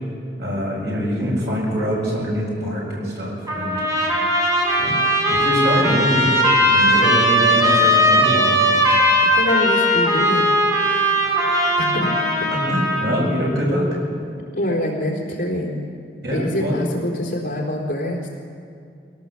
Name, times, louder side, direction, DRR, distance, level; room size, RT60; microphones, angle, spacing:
voice 1, 0.4-3.8 4.8-5.0 5.3-6.3 6.7-8.7 11.2-11.4 12.5-13.9 16.2-16.8, equal, 65° right, -3 dB, 7.4 m, -24 dB
Trumpet, 3.5-13.2, equal, 20° right, 4.5 m, -18 dB
voice 2, 9.3-10.5 11.8-12.1 12.4-12.5 14.6-15.8 16.3-18.3, left 1 dB, 50° left, -1 dB, 4.1 m, -25 dB
21.5 x 17.5 x 7.5 m, 2.3 s
head